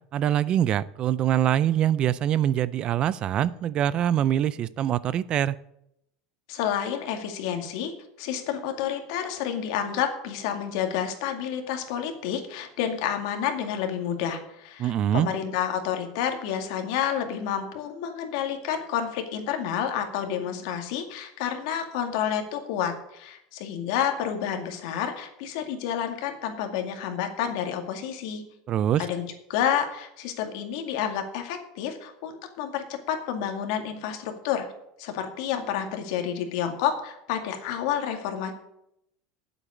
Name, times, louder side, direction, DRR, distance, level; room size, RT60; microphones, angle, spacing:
voice 1, 0.1-5.6 14.8-15.3 28.7-29.1, right 11 dB, 35° right, 19 dB, 0.4 m, -24 dB
voice 2, 6.5-28.4 29.0-34.7 35.0-38.5, left 9 dB, 65° left, 5 dB, 2.2 m, -29 dB
9.1 x 8.0 x 8.4 m, 0.78 s
supercardioid pair, 150°, 3 cm